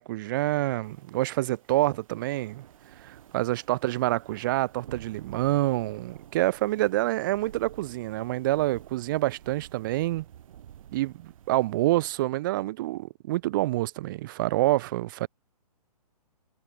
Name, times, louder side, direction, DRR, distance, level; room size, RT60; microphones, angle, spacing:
voice 1, 0.0-2.6 3.0-10.3 10.9-15.3, right 17 dB, 35° right, 0.4 m, -27 dB
sound 1, 0.8-12.2, right 10 dB, 60° right, 2.4 m, -50 dB
hypercardioid pair, 135°, 20 cm